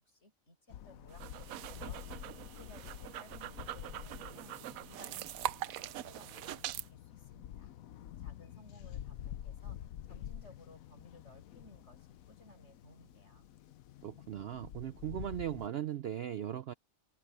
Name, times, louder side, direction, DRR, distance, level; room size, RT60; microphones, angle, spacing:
voice 1, 0.0-2.3 2.5-7.7 8.2-13.5, left 1 dB, 55° left, 8.3 m, -60 dB
sound 1, 0.7-15.7, left 11 dB, 80° left, 1.1 m, -48 dB
sound 2, 1.1-6.9, right 12 dB, 80° right, 1.0 m, -42 dB
voice 2, 14.0-16.7, right 11 dB, 60° right, 0.6 m, -38 dB
omnidirectional pair, 1.5 m